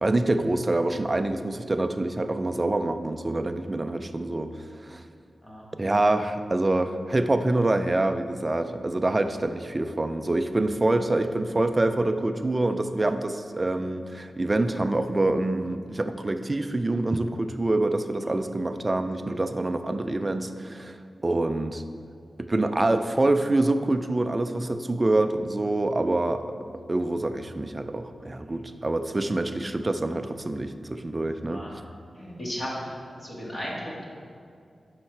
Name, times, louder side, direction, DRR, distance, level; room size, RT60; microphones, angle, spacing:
voice 1, 0.0-4.5 4.9-5.0 5.8-21.0 21.2-21.8 22.4-26.6 26.9-31.6, right 2 dB, 25° right, 8 dB, 0.4 m, -26 dB
voice 2, 32.2-32.9 33.2-34.0, equal, 25° left, -5 dB, 2.0 m, -35 dB
11.5 x 5.7 x 3.3 m, 2.4 s
wide cardioid pair, 150°, 0 cm